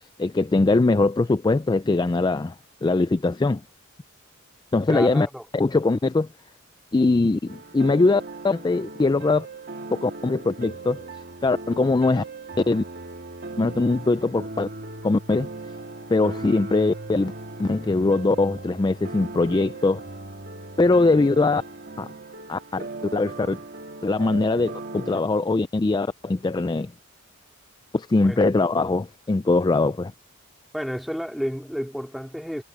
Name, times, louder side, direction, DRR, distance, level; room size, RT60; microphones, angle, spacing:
voice 1, 0.2-2.5 2.8-3.6 4.7-5.3 5.5-6.3 6.9-9.5 9.9-11.0 11.4-12.2 12.7-12.8 13.6-14.7 15.0-15.5 16.1-17.3 17.6-20.0 20.8-21.6 22.0-22.1 22.5-23.6 24.0-26.9 27.9-30.1, left 3 dB, 20° left, 0.3 m, -21 dB
voice 2, 4.9-5.4 28.2-28.5 30.7-32.6, equal, ahead, 2.9 m, -31 dB
sound 1, 7.5-25.2, right 2 dB, 50° right, 2.4 m, -38 dB
head